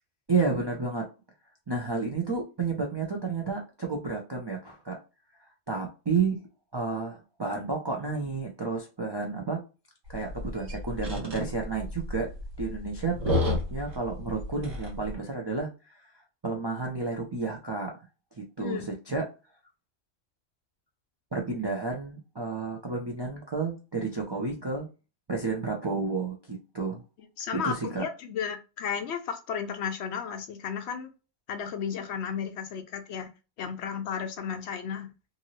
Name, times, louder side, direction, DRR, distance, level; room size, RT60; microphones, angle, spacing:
voice 1, 0.3-1.1 1.7-5.0 5.7-6.4 6.7-9.6 10.1-12.3 12.6-16.0 16.4-17.9 18.6-19.3 21.3-24.9 25.3-27.0 27.5-28.1, right 4 dB, 45° right, 0.3 m, -31 dB
sound 1, 10.1-15.1, left 1 dB, 80° right, 1.5 m, -32 dB
voice 2, 27.4-31.1 31.5-33.3 33.6-35.1, left 7 dB, 65° left, 0.8 m, -33 dB
2.7 x 2.6 x 2.9 m
omnidirectional pair, 1.3 m